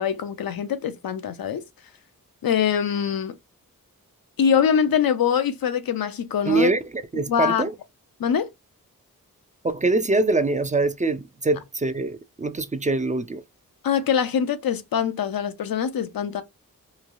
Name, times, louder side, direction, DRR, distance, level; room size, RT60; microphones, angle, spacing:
voice 1, 0.0-1.6 2.4-3.3 4.4-6.7 7.3-7.6 8.2-8.5 13.8-16.4, left 8 dB, 80° left, 0.5 m, -23 dB
voice 2, 6.5-7.7 9.6-13.4, right 2 dB, 25° right, 0.4 m, -24 dB
3.1 x 2.2 x 2.5 m
cardioid pair, 45°, 34 cm